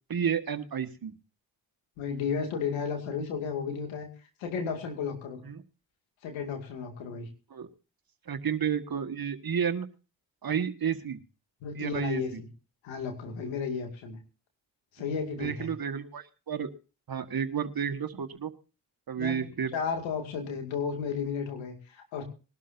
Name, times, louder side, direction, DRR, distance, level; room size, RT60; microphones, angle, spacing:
voice 1, 0.1-1.1 5.4-5.6 7.5-7.7 8.3-9.9 10.4-11.2 11.7-12.2 15.4-16.7 17.1-18.5 19.1-19.7, right 7 dB, 50° right, 9 dB, 1.7 m, -31 dB
voice 2, 2.0-4.1 4.4-5.4 6.2-7.3 11.6-12.5 12.8-14.2 14.9-15.7 19.2-22.2, left 6 dB, 90° left, 4 dB, 2.4 m, -33 dB
21.0 x 12.0 x 2.7 m, 0.34 s
supercardioid pair, 40°, 45 cm